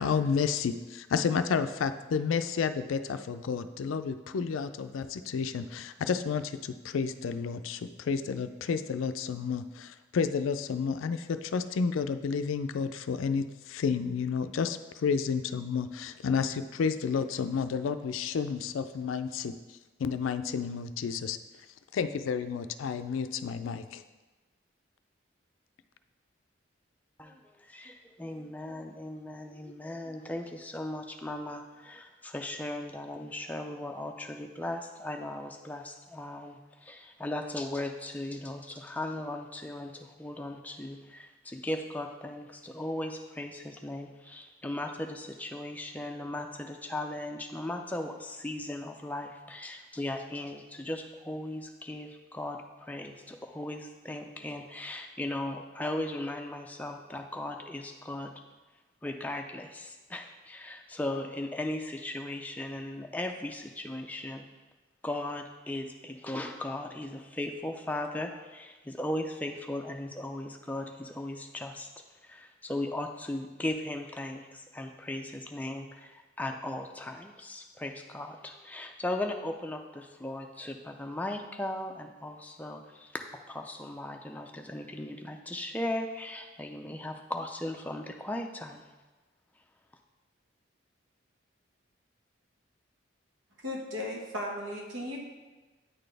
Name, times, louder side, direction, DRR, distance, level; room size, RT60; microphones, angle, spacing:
voice 1, 0.0-19.5 20.0-21.4 21.9-24.0, left 6 dB, 85° left, 11 dB, 0.4 m, -31 dB
voice 2, 27.2-58.3 59.0-64.4 65.0-71.9 72.2-88.8, left 1 dB, 10° left, 3 dB, 0.4 m, -37 dB
voice 3, 93.6-95.2, left 1 dB, 85° right, -1 dB, 1.2 m, -36 dB
9.1 x 4.1 x 3.3 m, 1.2 s
head